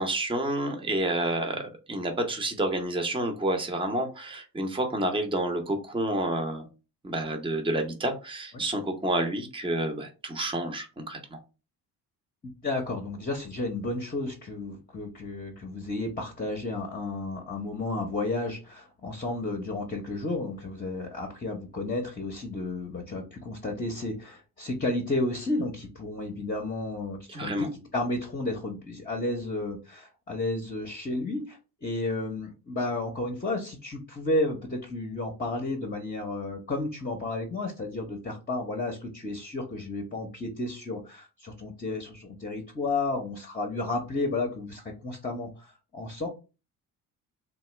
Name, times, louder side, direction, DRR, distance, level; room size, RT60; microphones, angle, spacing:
voice 1, 0.0-6.7 7.0-11.4 27.3-27.7, right 1 dB, 10° right, 5 dB, 0.7 m, -29 dB
voice 2, 12.6-45.7 45.9-46.3, left 2 dB, 20° left, 1 dB, 0.8 m, -32 dB
2.8 x 2.2 x 3.2 m, 0.31 s
hypercardioid pair, 50°, 47 cm